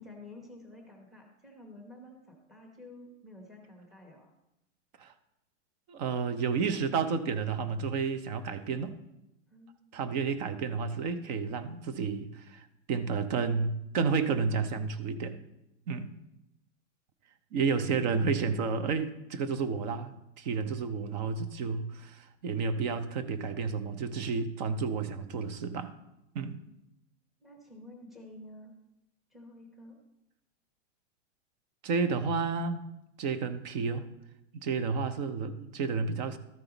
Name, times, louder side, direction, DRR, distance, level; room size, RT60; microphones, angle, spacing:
voice 1, 0.0-4.3 9.5-10.0 26.5-26.8 27.4-28.7 29.3-30.0, left 1 dB, ahead, 0 dB, 1.0 m, -51 dB
voice 2, 5.9-9.0 9.9-15.4 15.9-16.1 17.5-25.9 26.3-26.6 31.8-32.8 33.2-34.1 34.5-36.4, right 5 dB, 35° right, 12 dB, 0.7 m, -31 dB
13.5 x 5.5 x 4.0 m, 0.88 s
supercardioid pair, 160°, 37 cm